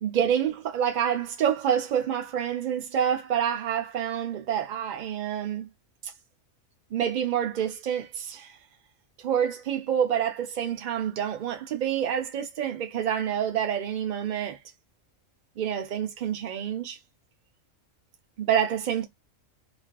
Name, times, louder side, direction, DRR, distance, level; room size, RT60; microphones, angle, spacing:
voice 1, 0.0-5.7 6.0-6.1 6.9-8.6 9.2-14.6 15.6-17.0 18.4-19.0, right 9 dB, 65° right, 0.4 m, -27 dB
2.4 x 2.4 x 2.2 m
omnidirectional pair, 1.4 m